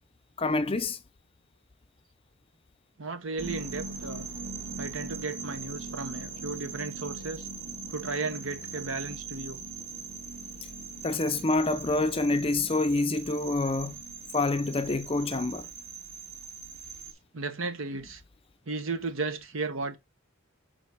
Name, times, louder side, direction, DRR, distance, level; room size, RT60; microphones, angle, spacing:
voice 1, 0.4-1.0 11.0-14.0 14.3-15.7, left 2 dB, 25° left, 0.5 m, -27 dB
voice 2, 3.0-4.3 4.8-7.5 7.9-9.6 17.3-18.2 18.7-20.0, right 3 dB, 70° right, 1.0 m, -34 dB
sound 1, 3.4-17.1, right 4 dB, 50° right, 1.6 m, -41 dB
5.3 x 4.1 x 4.8 m
head